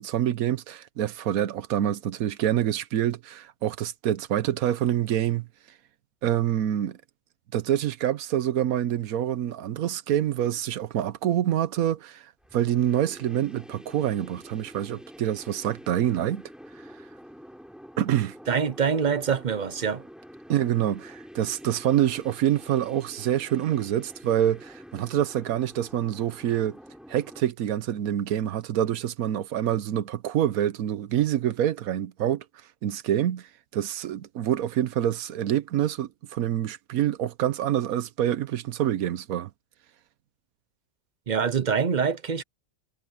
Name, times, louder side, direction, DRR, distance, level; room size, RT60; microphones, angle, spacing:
voice 1, 0.0-5.5 6.2-7.0 7.5-12.2 12.5-16.4 18.0-18.3 20.5-26.8 27.1-32.4 32.8-33.5 33.7-39.5, right 11 dB, 80° right, 1.2 m, -26 dB
deep space, 12.4-27.4, equal, ahead, 6.8 m, -47 dB
voice 2, 18.5-20.1 41.3-42.4, right 6 dB, 50° right, 0.5 m, -25 dB
omnidirectional pair, 1.5 m